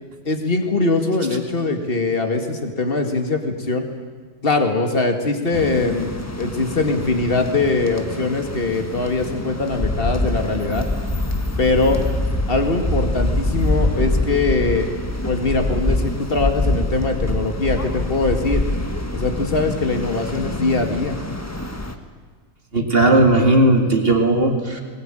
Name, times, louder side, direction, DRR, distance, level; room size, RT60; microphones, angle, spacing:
voice 1, 0.3-3.9 4.4-6.1 6.4-10.9 11.6-12.0 12.5-14.9 15.2-18.6 19.1-21.2, left 3 dB, 40° left, 5 dB, 2.4 m, -21 dB
sound 1, 5.5-21.9, left 1 dB, 10° left, 1.4 m, -25 dB
voice 2, 22.7-24.8, right 1 dB, 40° right, 3 dB, 2.4 m, -16 dB
20.5 x 19.5 x 9.1 m, 1.5 s
omnidirectional pair, 1.5 m